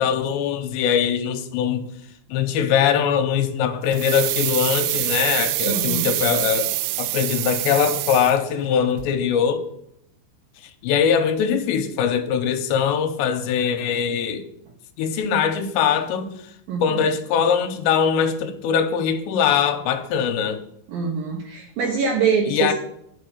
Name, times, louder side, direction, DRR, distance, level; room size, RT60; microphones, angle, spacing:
voice 1, 0.0-1.8 2.3-6.7 7.0-9.6 10.8-14.5 15.0-16.3 16.8-20.6 22.5-22.7, left 7 dB, 75° left, 2.9 m, -21 dB
sound 1, 3.9-8.7 9.0-9.1, right 16 dB, 85° right, 3.1 m, -25 dB
voice 2, 5.6-6.1 16.7-17.0 20.9-22.7, right 6 dB, 70° right, 2.3 m, -24 dB
10.5 x 6.3 x 6.6 m
omnidirectional pair, 5.6 m